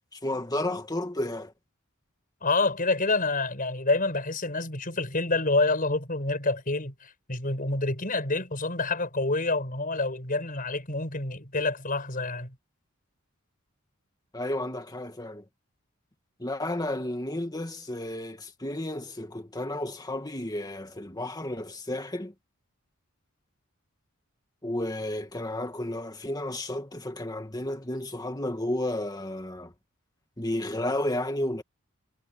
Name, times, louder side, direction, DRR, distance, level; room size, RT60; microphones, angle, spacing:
voice 1, 0.1-1.5 14.3-15.4 16.4-22.3 24.6-29.7 30.4-31.6, left 1 dB, 20° left, 2.3 m, -32 dB
voice 2, 2.4-12.5, left 3 dB, 40° left, 6.3 m, -27 dB
head